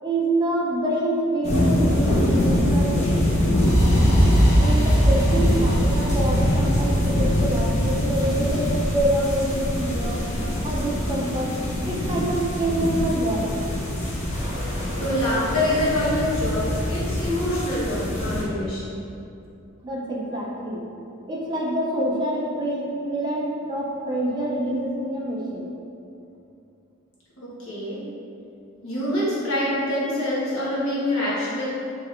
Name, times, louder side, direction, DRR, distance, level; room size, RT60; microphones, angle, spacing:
voice 1, 0.0-3.5 4.5-10.2 10.6-11.6 11.9-13.5 19.8-20.8 21.3-25.7, right 1 dB, 20° right, -4 dB, 0.4 m, -26 dB
sound 1, 1.4-18.4, left 1 dB, 30° left, 0.7 m, -24 dB
sound 2, 3.6-11.5, equal, 50° left, 1.0 m, -23 dB
sound 3, 13.9-17.4, equal, 5° right, 1.2 m, -39 dB
voice 2, 15.0-19.1 27.4-28.0 28.8-31.7, left 1 dB, 75° left, -8 dB, 1.1 m, -25 dB
4.5 x 3.0 x 2.4 m, 2.6 s
head